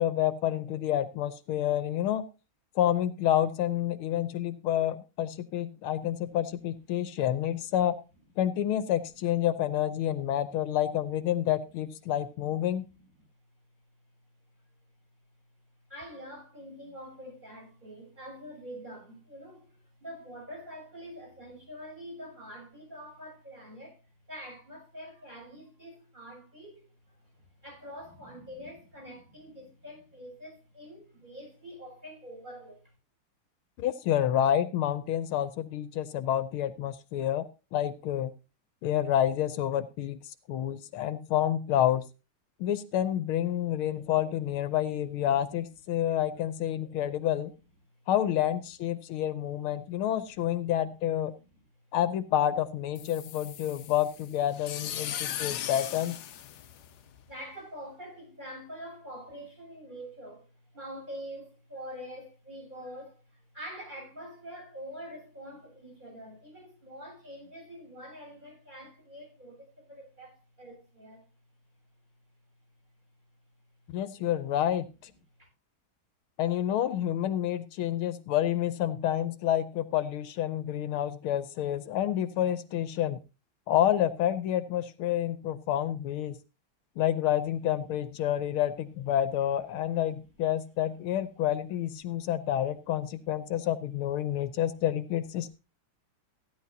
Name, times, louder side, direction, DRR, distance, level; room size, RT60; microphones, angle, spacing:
voice 1, 0.0-2.2 2.8-8.0 8.4-12.9 33.8-37.5 37.7-38.3 38.8-42.0 42.6-47.5 48.1-51.3 51.9-56.2 73.9-74.9 76.4-83.2 83.7-86.4 87.0-95.5, left 11 dB, 80° left, 1.6 m, -29 dB
voice 2, 15.9-24.0 24.3-32.8 43.5-43.6 43.9-44.1 45.9-46.0 47.0-47.1 49.2-49.3 50.4-50.5 53.4-53.5 57.3-60.5 60.7-71.2 75.4-75.5 89.7-89.8 92.0-92.3 94.2-94.6, equal, 20° right, 7.9 m, -45 dB
sound 1, 53.0-57.3, left 10 dB, 65° left, 1.1 m, -38 dB
15.5 x 10.5 x 2.7 m
omnidirectional pair, 2.4 m